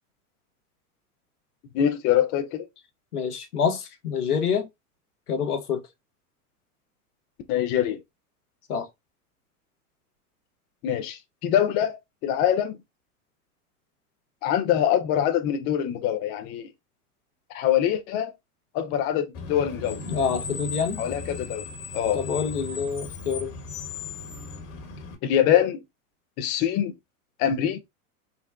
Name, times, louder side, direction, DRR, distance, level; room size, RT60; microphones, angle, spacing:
voice 1, 1.7-2.7 7.5-8.0 10.8-12.8 14.4-16.7 17.5-18.3 18.7-20.0 21.0-21.7 21.9-22.2 25.2-25.8 26.4-26.9 27.4-27.8, left 10 dB, 25° left, 0.3 m, -24 dB
voice 2, 3.1-4.7 5.3-5.8 8.7-8.9 20.1-21.0 22.1-23.5, left 6 dB, 90° left, 0.8 m, -27 dB
Screech, 19.3-25.2, left 4 dB, 55° left, 1.2 m, -37 dB
3.7 x 2.1 x 2.3 m
hypercardioid pair, 95°, 44 cm